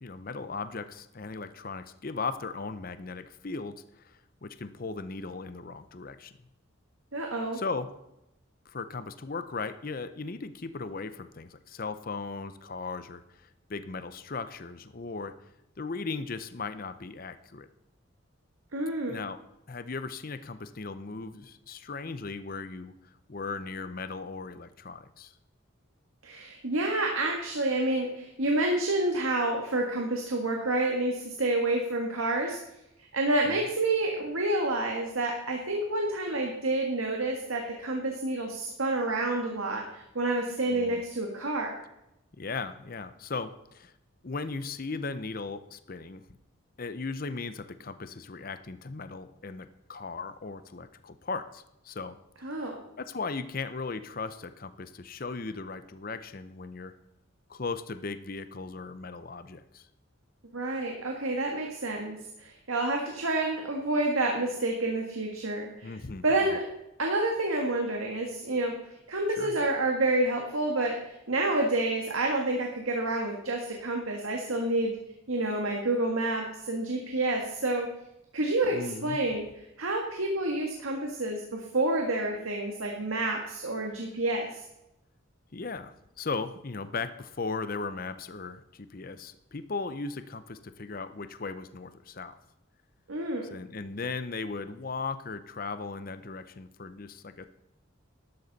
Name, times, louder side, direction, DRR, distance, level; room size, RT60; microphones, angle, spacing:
voice 1, 0.0-4.1 4.4-6.3 7.5-7.9 8.7-13.2 13.7-15.4 15.8-17.7 19.1-19.4 19.7-22.9 23.3-25.3 33.4-33.7 40.7-41.0 42.4-43.9 44.2-46.2 46.8-52.2 52.5-56.9 57.5-59.9 65.8-66.2 69.4-69.5 78.7-79.2 85.5-92.4 93.5-97.5, left 4 dB, 45° left, 12 dB, 0.6 m, -37 dB
voice 2, 7.1-7.6 18.7-19.2 26.2-32.6 33.1-41.7 52.4-52.8 60.5-65.9 66.2-66.6 67.0-68.7 69.1-75.0 75.3-77.9 78.3-79.5 79.8-84.6 93.1-93.5, right 2 dB, 85° right, 1 dB, 1.7 m, -29 dB
12.0 x 12.0 x 4.1 m, 0.87 s
head